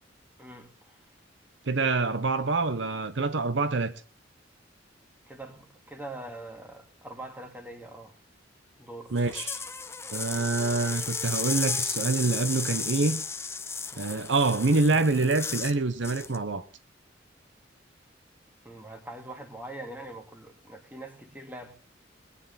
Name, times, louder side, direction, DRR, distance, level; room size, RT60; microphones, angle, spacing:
voice 1, 0.4-1.1 5.3-8.2 8.8-9.1 18.6-21.7, right 1 dB, 10° right, 2.2 m, -43 dB
voice 2, 1.7-3.9 9.1-9.6 10.1-13.2 14.0-16.6, right 3 dB, 70° right, 0.8 m, -26 dB
sound 1, 9.1-15.8 16.0-16.4, left 5 dB, 15° left, 0.8 m, -34 dB
21.0 x 9.8 x 4.1 m
head